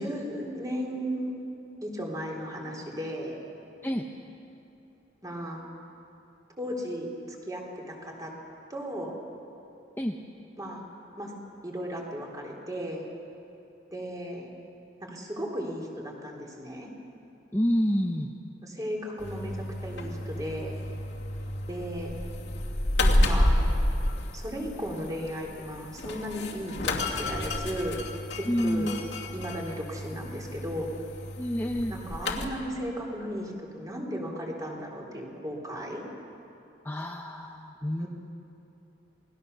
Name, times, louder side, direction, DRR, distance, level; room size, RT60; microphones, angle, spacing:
voice 1, 0.0-1.4 1.8-3.3 5.2-5.6 6.6-8.3 8.7-9.1 10.6-10.8 11.2-11.4 11.6-13.1 13.9-14.5 15.0-16.9 18.6-20.8 21.7-22.1 23.0-23.6 24.3-28.0 28.4-28.9 29.3-30.9 31.9-36.0 38.0-38.1, equal, 20° right, 0 dB, 3.6 m, -35 dB
voice 2, 17.5-18.3 28.5-29.0 31.4-31.9 36.8-38.1, equal, 10° left, 2 dB, 0.9 m, -28 dB
sound 1, 19.2-32.5, left 1 dB, 70° left, 2.6 m, -30 dB
28.5 x 20.0 x 6.8 m, 2.8 s
head